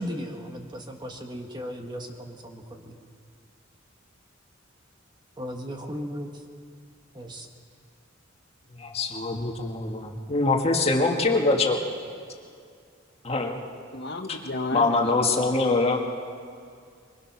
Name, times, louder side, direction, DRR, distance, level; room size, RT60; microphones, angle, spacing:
voice 1, 0.0-3.0 5.4-6.3 7.1-7.5, equal, 20° right, 3 dB, 1.4 m, -36 dB
voice 2, 8.8-11.8 13.3-13.5 14.7-16.0, left 3 dB, 30° left, 1 dB, 1.9 m, -23 dB
voice 3, 13.9-15.5, left 2 dB, 55° left, 4 dB, 1.5 m, -33 dB
23.0 x 21.0 x 6.0 m, 2.3 s
head